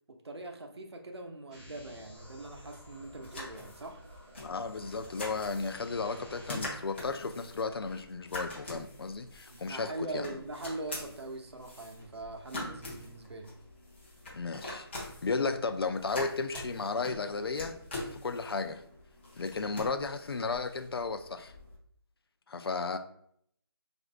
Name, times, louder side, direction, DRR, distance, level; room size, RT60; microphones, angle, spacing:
voice 1, 0.2-4.0 9.5-13.5, right 2 dB, 85° right, 0.7 m, -42 dB
sound 1, 1.5-6.5, equal, 20° right, 0.7 m, -52 dB
sound 2, 2.1-21.8, left 1 dB, 25° left, 0.7 m, -45 dB
voice 2, 4.4-10.2 14.3-17.8 18.2-18.8 19.4-21.5 22.5-23.0, left 4 dB, 65° left, 0.4 m, -34 dB
4.3 x 2.5 x 2.5 m
figure-of-eight pair, 170°, 13 cm